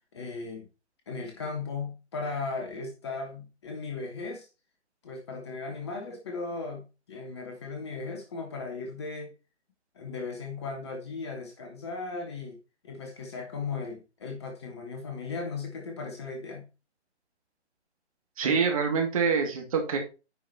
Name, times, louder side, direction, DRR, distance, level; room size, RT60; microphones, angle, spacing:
voice 1, 0.1-0.7 1.1-4.5 5.0-9.3 9.9-12.6 12.8-16.7, left 4 dB, 25° left, 3 dB, 1.2 m, -37 dB
voice 2, 18.4-20.0, right 5 dB, 30° right, 3 dB, 2.1 m, -25 dB
9.5 x 5.0 x 4.1 m, 0.31 s
figure-of-eight pair, 145°, 35 cm